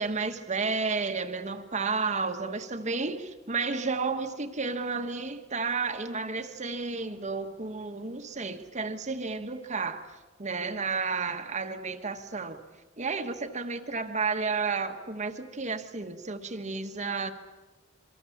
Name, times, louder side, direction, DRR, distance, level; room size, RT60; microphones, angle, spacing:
voice 1, 0.0-10.1 10.4-12.6 13.0-17.3, right 4 dB, 35° right, 1.4 m, -32 dB
27.0 x 24.0 x 7.3 m
head